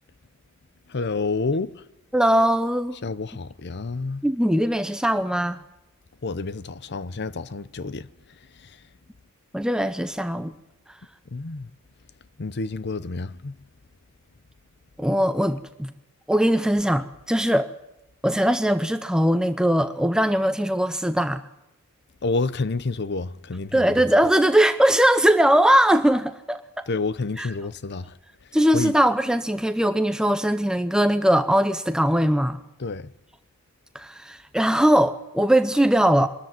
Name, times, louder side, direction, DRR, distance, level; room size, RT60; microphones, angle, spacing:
voice 1, 0.9-1.7 3.0-4.2 6.2-8.1 8.6-8.7 11.3-11.7 12.4-13.6 22.2-23.8 26.9-28.1 28.7-28.9 32.8-33.1, left 3 dB, 55° left, 0.7 m, -29 dB
voice 2, 2.1-3.0 4.2-5.6 9.5-10.5 15.0-15.9 16.3-17.7 18.2-21.4 23.7-26.6 27.4-27.5 28.5-32.6 33.9-36.3, right 1 dB, 5° right, 0.6 m, -20 dB
23.0 x 13.5 x 9.4 m
head